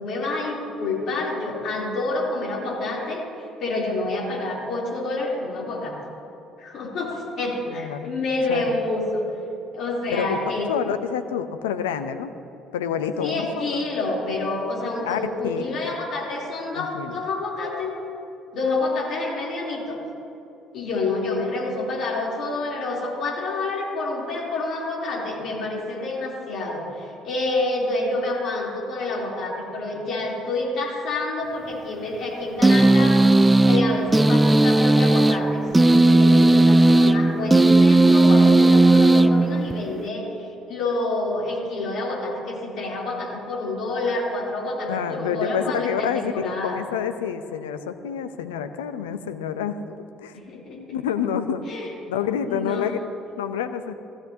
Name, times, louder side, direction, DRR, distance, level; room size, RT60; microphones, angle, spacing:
voice 1, 0.0-6.0 6.6-9.2 9.7-10.7 13.2-17.9 18.5-20.0 20.7-33.2 33.6-46.8 50.3-51.0 51.7-51.9 52.5-53.0, left 2 dB, 55° left, -3 dB, 3.2 m, -28 dB
voice 2, 7.7-8.1 8.5-8.8 10.1-10.4 10.7-12.3 12.7-13.8 15.0-15.8 16.7-17.2 44.9-50.4 50.7-51.6 52.1-53.0 53.4-53.9, left 8 dB, 80° left, 10 dB, 0.6 m, -28 dB
sound 1, 32.6-40.0, right 2 dB, 15° right, 0.3 m, -16 dB
18.0 x 15.0 x 2.8 m, 2.7 s
hypercardioid pair, 55°, 0 cm